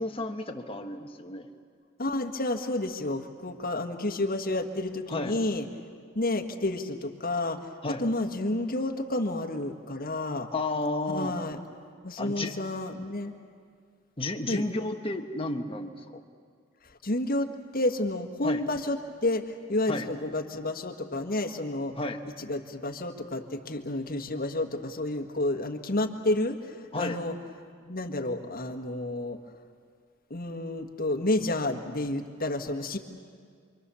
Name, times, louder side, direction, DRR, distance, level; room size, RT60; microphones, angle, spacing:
voice 1, 0.0-1.5 5.1-5.3 7.8-8.0 10.5-11.4 12.2-12.6 14.2-16.2 18.4-18.6 19.9-20.1 22.0-22.2 26.9-27.2, left 2 dB, 25° left, 5 dB, 1.3 m, -32 dB
voice 2, 2.0-5.7 6.2-10.5 11.1-11.6 12.0-13.3 14.5-14.6 16.9-17.5 17.7-21.9 22.4-27.4 27.9-29.4 30.3-33.0, left 2 dB, 45° left, 4 dB, 1.6 m, -30 dB
28.5 x 24.0 x 7.1 m, 2.1 s
head